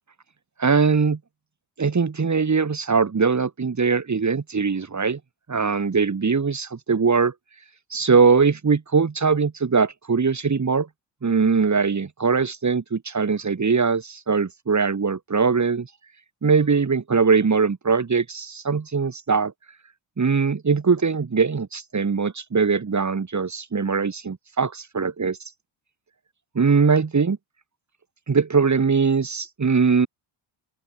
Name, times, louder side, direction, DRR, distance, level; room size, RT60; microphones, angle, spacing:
voice 1, 0.6-1.2 1.8-5.2 5.5-7.3 7.9-10.9 11.2-15.9 16.4-19.5 20.2-25.4 26.5-27.4 28.3-30.1, right 5 dB, 35° right, 6.2 m, -21 dB
open air
cardioid pair, 85°, 50 cm